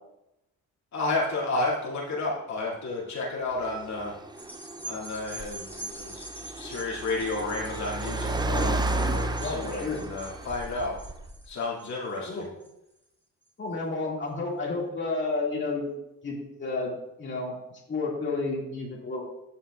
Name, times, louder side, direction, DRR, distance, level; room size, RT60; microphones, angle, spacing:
voice 1, 0.9-4.1 4.8-11.0 11.5-12.5, left 2 dB, 65° left, -4 dB, 2.5 m, -31 dB
Car, 3.5-11.5, right 2 dB, 15° right, 0.5 m, -33 dB
sound 1, 4.3-13.0 13.5-13.6, right 2 dB, 5° left, 2.8 m, -44 dB
voice 2, 9.4-10.0 12.3-12.4 13.6-15.9 16.2-16.9 17.2-17.6 17.9-19.2, left 3 dB, 40° left, -3 dB, 2.2 m, -31 dB
14.0 x 5.6 x 2.4 m, 0.87 s
cardioid pair, 90°, 30 cm